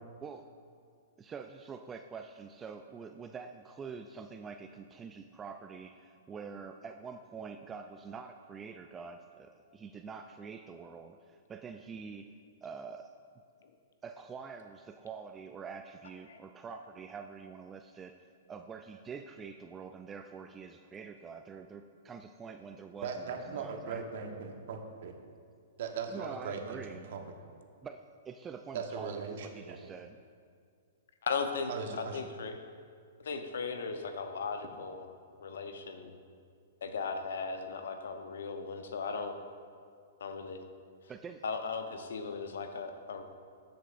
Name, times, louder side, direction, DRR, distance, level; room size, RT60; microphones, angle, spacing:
voice 1, 1.2-12.3 12.6-13.1 14.0-24.0 26.1-27.1 27.8-30.2 41.1-41.4, right 5 dB, 20° right, 7 dB, 0.3 m, -46 dB
voice 2, 23.0-25.1 25.8-27.2 28.7-29.9 31.7-32.2, right 5 dB, 65° right, 4 dB, 1.1 m, -39 dB
voice 3, 31.2-31.7 32.0-32.6 33.2-35.1 35.4-36.1 36.8-39.4 40.2-40.6 41.4-43.2, left 5 dB, 75° left, 7 dB, 0.8 m, -37 dB
13.5 x 7.8 x 2.6 m, 2.2 s
hypercardioid pair, 125°, 0 cm